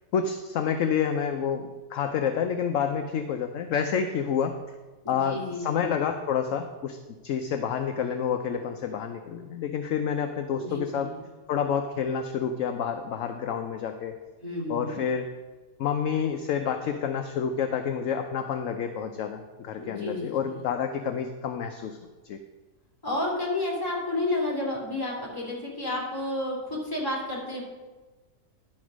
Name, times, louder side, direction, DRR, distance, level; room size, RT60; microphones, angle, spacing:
voice 1, 0.1-4.6 5.1-7.0 7.2-11.1 11.5-14.2 14.7-15.3 15.8-22.0 22.2-22.4, left 7 dB, 65° left, 6 dB, 0.8 m, -28 dB
voice 2, 5.0-6.1 10.5-11.2 14.4-15.0 19.8-20.6 23.0-27.6, left 2 dB, 15° left, -4 dB, 2.4 m, -31 dB
11.0 x 4.3 x 6.1 m, 1.2 s
omnidirectional pair, 1.7 m